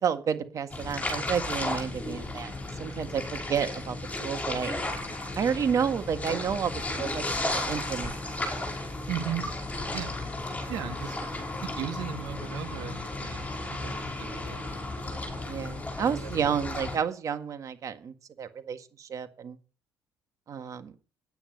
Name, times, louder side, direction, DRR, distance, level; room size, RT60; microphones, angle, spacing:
voice 1, 0.0-2.5 2.8-4.0 4.2-4.7 5.4-8.7 15.5-19.6 20.5-20.9, right 7 dB, 50° right, 8 dB, 1.8 m, -31 dB
sound 1, 0.7-17.0, left 2 dB, 20° left, 5.4 m, -34 dB
voice 2, 9.1-9.5 9.9-10.1 10.7-11.2 11.8-14.6 16.1-16.3, right 10 dB, 80° right, 10 dB, 1.6 m, -37 dB
10.0 x 9.1 x 6.6 m, 0.37 s
cardioid pair, 100°, 7 cm